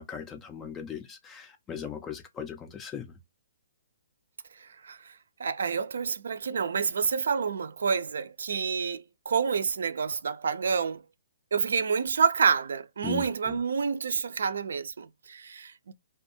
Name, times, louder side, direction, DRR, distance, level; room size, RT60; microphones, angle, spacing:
voice 1, 0.0-3.2 13.0-13.6, left 6 dB, 15° left, 0.3 m, -39 dB
voice 2, 4.6-5.1 5.4-11.0 11.5-15.9, right 6 dB, 75° right, 0.4 m, -28 dB
2.5 x 2.3 x 2.6 m
hypercardioid pair, 140°, 0 cm